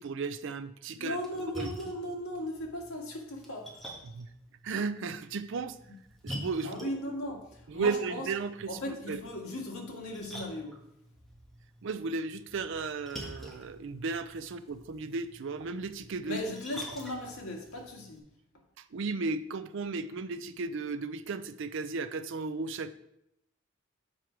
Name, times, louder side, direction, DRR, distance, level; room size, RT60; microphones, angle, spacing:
voice 1, 0.0-1.7 4.0-4.3 4.6-5.8 6.2-6.9 7.7-9.2 11.8-16.4 18.8-23.0, right 4 dB, 60° right, 11 dB, 0.4 m, -35 dB
voice 2, 1.0-3.8 6.6-8.3 8.7-10.8 16.2-18.2, left 1 dB, 85° left, -1 dB, 1.8 m, -37 dB
Splash splatter, 1.1-18.2, equal, ahead, 1.5 m, -48 dB
7.5 x 5.0 x 4.5 m, 0.79 s
head